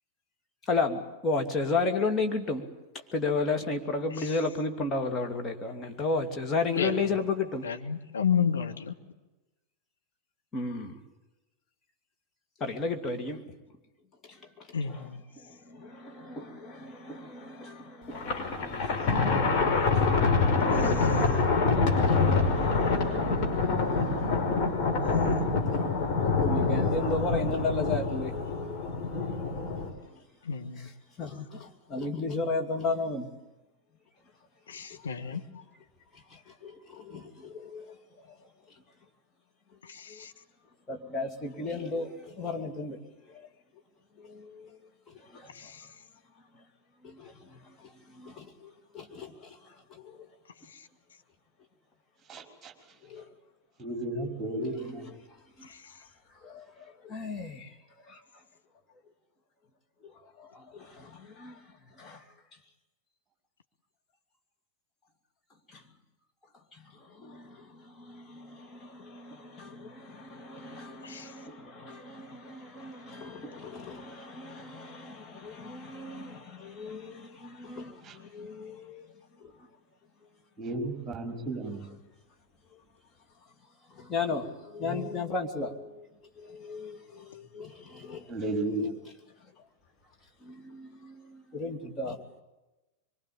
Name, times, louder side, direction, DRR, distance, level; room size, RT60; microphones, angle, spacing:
voice 1, 0.7-2.7 3.1-7.7 10.5-11.0 12.6-13.4 14.2-15.1 15.4-24.4 24.8-25.0 26.2-29.7 30.1-30.2 31.2-33.3 34.7-35.1 36.1-38.0 38.3-38.4 40.1-40.2 40.9-43.0 43.3-43.5 44.2-44.8 45.1-45.7 46.5-46.6 47.0-50.3 53.0-53.3 54.8-55.1 55.6-55.7 56.4-57.8 58.0-58.2 60.0-61.6 61.9-62.2 65.7-65.8 66.7-79.5 83.9-86.1 86.4-88.3 90.4-92.2, left 3 dB, 25° left, 2.9 m, -35 dB
voice 2, 6.8-7.1 7.6-8.9 14.7-15.2 20.7-21.2 30.4-30.9 34.7-35.4 39.8-40.3 45.5-45.9 50.7-50.9 55.6-55.9 71.0-71.3, left 7 dB, 70° left, 1.9 m, -32 dB
Thunder, 18.1-29.9, left 4 dB, 40° left, 5.4 m, -26 dB
voice 3, 52.3-52.7 53.8-55.2 78.0-78.2 80.6-81.9 84.8-85.0 88.2-89.0, right 2 dB, 15° right, 5.5 m, -34 dB
24.5 x 24.0 x 8.8 m
figure-of-eight pair, 90°, 0 cm